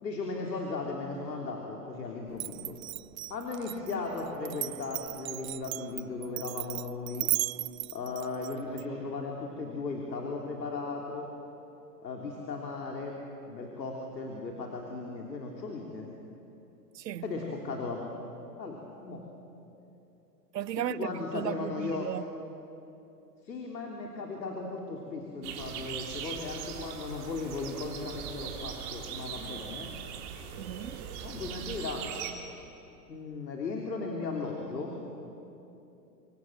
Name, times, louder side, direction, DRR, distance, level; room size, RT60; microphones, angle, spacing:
voice 1, 0.0-2.8 3.3-7.3 7.9-11.3 12.0-13.2 13.5-16.1 17.2-18.1 18.6-19.2 20.9-22.1 23.4-29.9 31.2-32.0 33.1-35.0, left 3 dB, 85° left, 3.5 m, -36 dB
Glass, 2.3-8.8, right 16 dB, 60° right, 0.5 m, -35 dB
voice 2, 16.9-17.3 20.5-22.3 30.6-31.2, right 11 dB, 75° right, 0.9 m, -36 dB
sound 1, 25.4-32.3, right 8 dB, 40° right, 3.1 m, -40 dB
27.0 x 24.0 x 7.5 m
hypercardioid pair, 120°, 50 cm